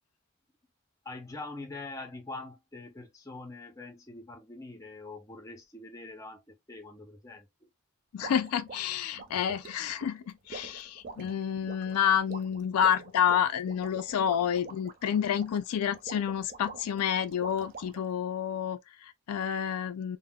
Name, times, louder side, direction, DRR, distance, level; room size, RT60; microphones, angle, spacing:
voice 1, 1.0-7.5 11.2-11.3, left 2 dB, 15° left, 0.5 m, -44 dB
voice 2, 8.1-20.2, left 8 dB, 85° left, 0.4 m, -29 dB
sound 1, 8.2-18.1, right 4 dB, 40° right, 0.4 m, -46 dB
3.4 x 2.1 x 2.2 m
head